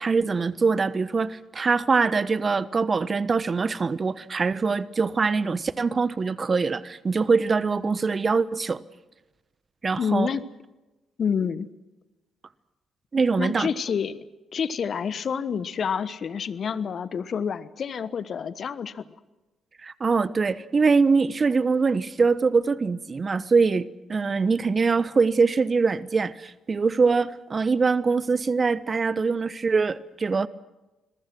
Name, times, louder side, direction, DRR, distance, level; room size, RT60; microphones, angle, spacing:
voice 1, 0.0-8.8 9.8-10.3 13.1-13.7 19.8-30.5, right 4 dB, 40° right, 1.1 m, -23 dB
voice 2, 10.0-10.4 11.2-11.7 13.4-14.2 14.5-19.1, left 7 dB, 55° left, 1.2 m, -28 dB
26.5 x 22.5 x 6.1 m
hypercardioid pair, 45°, 0 cm